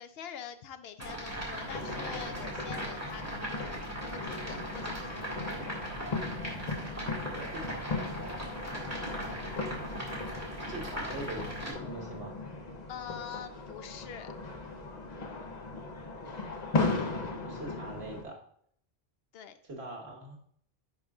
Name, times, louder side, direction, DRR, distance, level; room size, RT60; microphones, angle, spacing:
voice 1, 0.0-3.7 4.1-5.1 12.9-14.3 19.3-19.6, left 8 dB, 75° left, 10 dB, 0.8 m, -45 dB
sound 1, 1.0-11.7, right 1 dB, 15° right, 1.9 m, -39 dB
sound 2, 1.6-18.2, left 3 dB, 45° left, 0.9 m, -37 dB
voice 2, 7.3-8.0 9.2-10.1 10.7-12.4 17.4-18.4 19.6-20.4, right 2 dB, 80° right, 1 dB, 1.7 m, -43 dB
10.0 x 4.9 x 2.4 m, 0.63 s
omnidirectional pair, 1.1 m